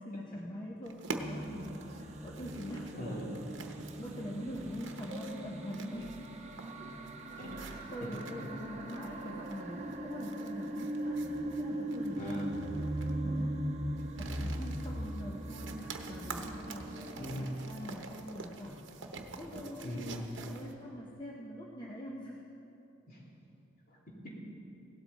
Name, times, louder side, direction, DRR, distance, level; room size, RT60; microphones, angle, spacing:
voice 1, 0.0-2.9 3.7-6.2 6.8-6.9 7.5-13.6 14.2-18.9 19.4-22.4, equal, 25° left, -3 dB, 0.9 m, -44 dB
sound 1, 0.9-20.7, right 3 dB, 65° right, 1.0 m, -47 dB
sound 2, 1.2-17.6, right 1 dB, 35° right, 0.9 m, -39 dB
voice 2, 2.9-3.4 5.1-5.2 7.4-8.1 12.2-12.5 16.9-17.5 19.8-20.2 23.1-23.2 24.1-24.3, equal, 45° left, -4 dB, 3.0 m, -41 dB
16.5 x 12.5 x 4.1 m, 3.0 s
head